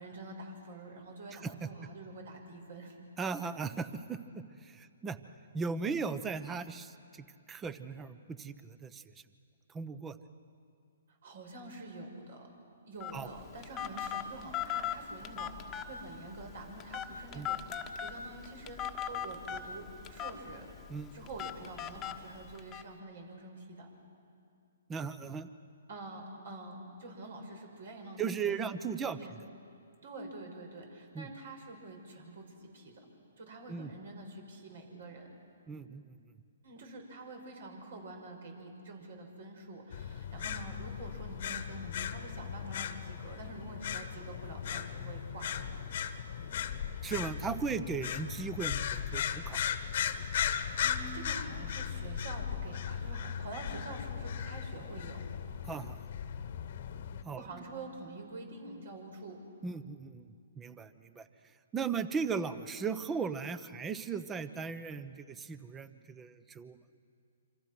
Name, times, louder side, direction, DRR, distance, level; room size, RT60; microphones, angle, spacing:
voice 1, 0.0-3.0 11.1-12.5 12.9-20.7 21.1-23.9 25.9-28.8 29.0-29.3 30.0-33.0 33.4-35.3 36.6-45.8 50.8-55.2 57.4-59.4, right 2 dB, 60° right, 3 dB, 6.0 m, -47 dB
voice 2, 3.2-5.2 5.5-9.0 9.7-10.2 13.1-13.3 17.3-17.5 20.9-21.1 24.9-25.5 28.2-29.2 31.1-31.3 33.7-33.9 35.7-36.2 47.0-49.6 55.7-56.0 57.2-57.4 59.6-60.2 60.6-61.3 61.7-66.8, right 5 dB, 15° right, 13 dB, 1.0 m, -37 dB
Telephone, 13.0-22.8, left 9 dB, 20° left, 1.3 m, -40 dB
sound 1, 39.9-57.2, left 8 dB, 55° left, 1.3 m, -37 dB
27.0 x 26.0 x 6.2 m, 2.4 s
hypercardioid pair, 135°, 0 cm